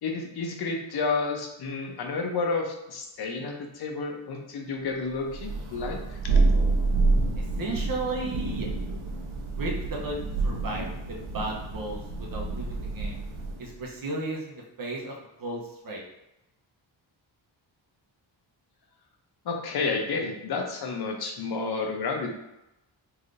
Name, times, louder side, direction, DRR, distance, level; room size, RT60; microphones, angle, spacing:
voice 1, 0.0-6.2 19.4-22.3, left 4 dB, 55° left, 2 dB, 0.7 m, -30 dB
Thunder, 5.3-13.7, right 3 dB, 85° right, 0.7 m, -28 dB
voice 2, 7.4-8.7 9.6-13.2 13.6-16.0, right 2 dB, 45° right, -2 dB, 0.8 m, -35 dB
3.3 x 2.8 x 2.5 m, 0.90 s
cardioid pair, 80°, 47 cm